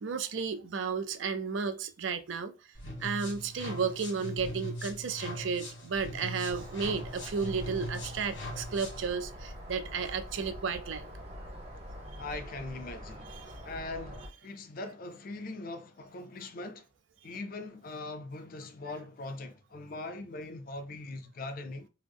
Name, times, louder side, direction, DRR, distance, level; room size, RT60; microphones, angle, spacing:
voice 1, 0.0-2.5 3.0-11.1, right 5 dB, 75° right, 0.4 m, -33 dB
sound 1, 2.7-9.1, left 1 dB, 80° left, 1.5 m, -41 dB
sound 2, 6.5-14.3, equal, 30° right, 0.8 m, -45 dB
voice 2, 12.2-13.4 13.6-16.9 17.2-21.9, left 2 dB, 45° left, 0.4 m, -41 dB
3.4 x 2.0 x 3.4 m
head